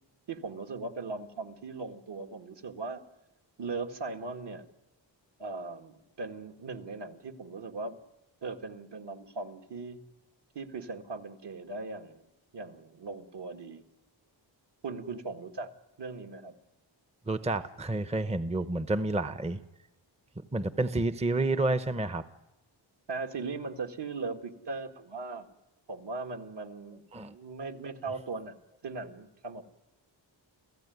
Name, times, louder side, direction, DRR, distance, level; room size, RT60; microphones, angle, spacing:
voice 1, 0.3-3.0 3.6-4.7 5.4-8.0 8.4-10.0 10.6-12.2 12.5-13.8 14.8-15.7 16.0-16.5 23.1-25.5 25.9-27.0 27.3-28.6 28.8-29.6, right 3 dB, 60° right, 5 dB, 1.9 m, -39 dB
voice 2, 17.3-19.6 20.5-22.2 27.1-27.3, right 2 dB, 15° right, 12 dB, 0.8 m, -29 dB
29.0 x 16.0 x 9.4 m, 0.96 s
wide cardioid pair, 135°, 46 cm